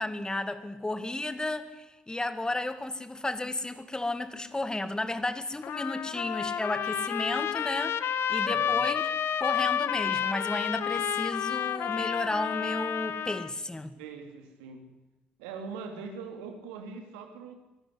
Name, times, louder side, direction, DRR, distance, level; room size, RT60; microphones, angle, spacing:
voice 1, 0.0-8.0 8.3-9.0 9.4-13.9, left 2 dB, 15° left, 12 dB, 1.9 m, -33 dB
Trumpet, 5.6-13.5, left 9 dB, 55° left, 1.1 m, -30 dB
voice 2, 8.3-8.8 14.0-14.9 15.4-17.5, right 5 dB, 75° right, 5 dB, 2.8 m, -42 dB
23.5 x 12.5 x 9.7 m, 1.0 s
figure-of-eight pair, 45°, 5 cm